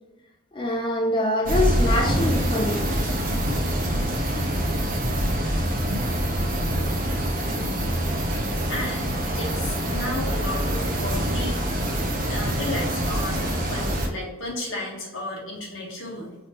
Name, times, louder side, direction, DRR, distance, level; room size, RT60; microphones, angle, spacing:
voice 1, 0.5-2.9, left 1 dB, 25° left, 0 dB, 0.5 m, -24 dB
sound 1, 1.5-14.1, right 1 dB, 45° right, 0.7 m, -25 dB
voice 2, 8.7-11.6 12.3-16.3, left 2 dB, 80° left, -2 dB, 1.4 m, -33 dB
5.1 x 2.9 x 2.9 m, 1.0 s
head